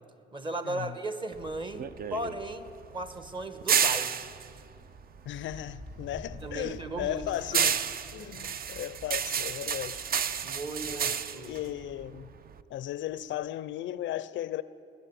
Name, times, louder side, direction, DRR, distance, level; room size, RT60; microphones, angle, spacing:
voice 1, 0.3-1.8 2.1-4.2 6.4-7.7 8.2-8.5 10.4-11.6, right 2 dB, 25° right, 1.1 m, -37 dB
sound 1, 1.3-5.8 6.2-12.6, right 7 dB, 50° right, 0.5 m, -31 dB
sound 2, 4.5-11.1 11.5-11.6 12.7-12.8 13.0-13.3, left 1 dB, 90° right, 3.7 m, -49 dB
voice 2, 5.2-7.8 8.1-10.1 10.8-12.3 12.7-14.6, left 13 dB, 70° left, 0.4 m, -36 dB
19.5 x 7.0 x 9.3 m
cardioid pair, 90°, 20 cm